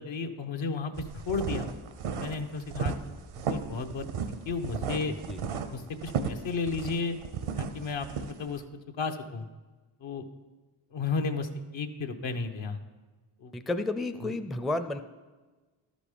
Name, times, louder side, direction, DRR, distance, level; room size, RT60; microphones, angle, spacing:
voice 1, 0.0-1.7 2.1-2.9 3.5-5.1 5.7-7.2 7.6-8.6 9.0-9.5 10.0-10.2 10.9-12.8 13.4-13.5 14.2-14.3, left 4 dB, 65° left, 5 dB, 1.0 m, -33 dB
sound 1, 0.9-8.6, right 6 dB, 75° right, 0.8 m, -34 dB
voice 2, 5.1-5.4 13.5-15.0, left 2 dB, ahead, 9 dB, 0.5 m, -32 dB
12.5 x 5.3 x 5.0 m, 1.3 s
supercardioid pair, 50°, 49 cm